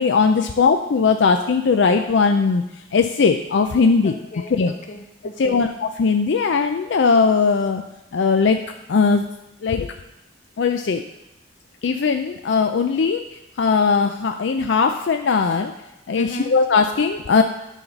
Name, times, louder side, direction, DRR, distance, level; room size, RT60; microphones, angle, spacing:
voice 1, 0.0-2.6 2.9-4.1 4.5-4.7 5.4-7.8 8.1-8.6 8.9-9.2 9.6-9.9 10.6-11.0 11.8-13.2 13.6-15.7 16.1-17.4, left 5 dB, 65° left, 6 dB, 0.4 m, -19 dB
voice 2, 4.0-5.7 16.1-16.5, equal, 40° left, 5 dB, 0.8 m, -35 dB
9.8 x 4.1 x 5.8 m, 0.91 s
head